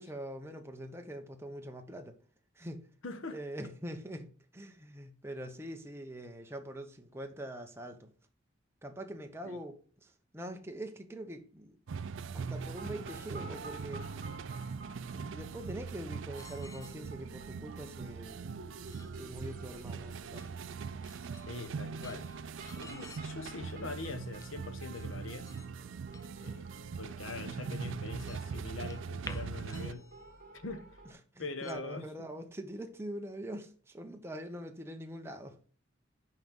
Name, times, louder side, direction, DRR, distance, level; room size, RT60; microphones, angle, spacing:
voice 1, 0.0-2.2 2.5-2.9 3.3-8.1 8.8-11.8 12.3-14.1 15.1-18.6 19.2-20.6 31.3-35.6, right 1 dB, 10° right, 0.8 m, -43 dB
voice 2, 3.0-3.4 9.4-9.6 21.5-22.3 22.6-25.5 26.4-26.7 27.0-30.1 30.6-31.0 31.4-32.3, left 3 dB, 80° left, 0.9 m, -43 dB
sound 1, 11.9-29.9, right 5 dB, 70° right, 0.4 m, -41 dB
sound 2, 12.6-31.1, right 2 dB, 45° right, 1.9 m, -54 dB
sound 3, 15.9-17.0 18.9-19.1 20.3-20.5 20.9-21.5 21.9-23.2 24.3-24.5 24.9-25.1 25.4-25.7 26.1-26.5 27.0-27.1 27.5-28.4 28.7-30.4 30.8-30.9 31.6-31.7, left 4 dB, 15° left, 0.4 m, -52 dB
5.7 x 5.2 x 6.1 m
head